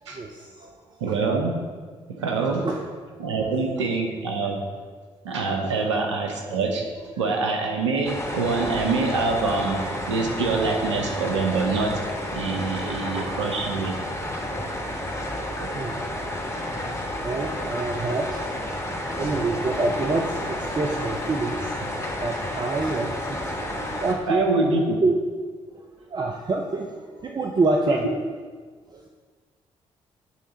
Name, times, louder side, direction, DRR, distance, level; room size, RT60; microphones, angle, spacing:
voice 1, 0.0-1.1 2.4-2.9 3.2-3.6 5.6-5.9 12.7-13.3 14.6-14.8 15.7-16.0 17.0-24.5 24.8-25.1 25.7-25.8 26.1-28.2 28.9-29.0, right 3 dB, 30° right, 1 dB, 0.6 m, -28 dB
voice 2, 1.0-1.6 2.1-2.7 3.2-4.6 5.2-6.8 7.2-9.8 10.1-12.0 12.3-13.9 15.6-15.7 24.3-25.0 27.9-28.0, right 3 dB, 85° right, 2 dB, 0.7 m, -25 dB
sound 1, 8.1-24.1, left 1 dB, 20° left, 1.2 m, -31 dB
8.4 x 3.6 x 4.1 m, 1.5 s
figure-of-eight pair, 45°, 15 cm